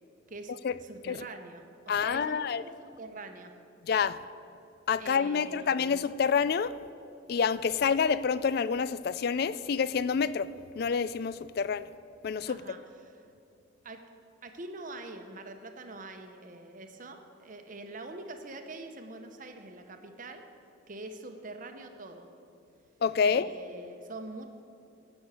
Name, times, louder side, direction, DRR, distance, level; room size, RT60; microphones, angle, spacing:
voice 1, 0.8-3.5 5.0-5.8 12.5-13.2 13.8-14.0 14.4-20.4 20.9-22.3 23.2-24.5, right 2 dB, 40° right, 6 dB, 0.9 m, -44 dB
voice 2, 1.9-2.6 3.9-4.2 4.9-6.7 7.3-10.5 10.8-11.9 12.2-12.6 23.0-23.5, left 6 dB, 50° left, 16 dB, 0.3 m, -27 dB
16.0 x 6.3 x 6.3 m, 2.6 s
head